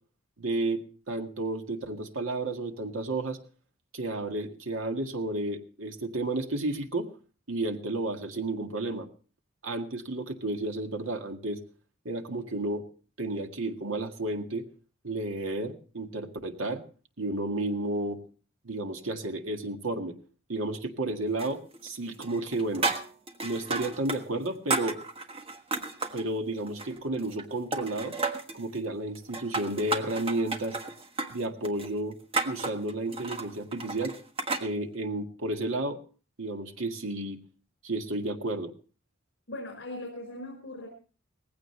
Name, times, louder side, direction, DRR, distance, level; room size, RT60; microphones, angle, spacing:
voice 1, 0.4-3.4 3.9-7.1 7.5-9.1 9.6-11.6 12.1-12.9 13.2-14.7 15.0-16.8 17.2-18.2 18.6-20.1 20.5-22.9 23.4-25.0 26.1-28.1 28.5-30.8 31.3-32.2 32.4-34.2 34.6-36.0 36.4-37.4 37.8-38.7, right 2 dB, 80° right, 5 dB, 1.8 m, -32 dB
sound 1, 21.4-22.0 22.2-24.2 24.5-26.2 26.7-27.5 27.7-28.6 29.2-34.7, right 3 dB, 30° right, 1.4 m, -33 dB
voice 2, 39.5-40.9, left 1 dB, 65° left, 2 dB, 5.2 m, -39 dB
19.0 x 15.5 x 3.2 m, 0.37 s
head